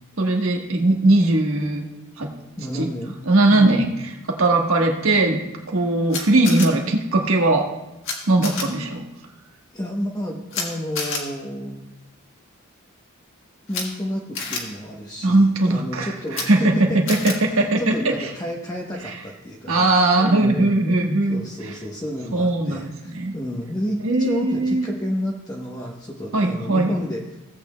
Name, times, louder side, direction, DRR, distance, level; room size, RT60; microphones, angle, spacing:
voice 1, 0.2-1.8 2.2-2.3 2.7-2.9 3.2-3.9 4.3-7.7 8.3-9.1 15.2-16.7 17.1-18.1 19.0-19.1 19.7-21.4 22.3-23.3 24.0-24.8 26.3-26.9, right 2 dB, 70° right, 2 dB, 1.3 m, -19 dB
voice 2, 2.6-3.2 3.5-3.8 9.7-11.8 13.7-17.2 17.5-20.9 21.3-27.2, equal, 15° left, -2 dB, 0.8 m, -30 dB
Camera, 6.1-6.7 8.0-8.1 8.4-8.6 10.5-10.6 10.9-11.2 13.7-13.8 14.3-14.6 16.3-16.4 17.1-17.3, left 4 dB, 60° left, 1.7 m, -28 dB
16.5 x 8.4 x 2.2 m, 0.94 s
head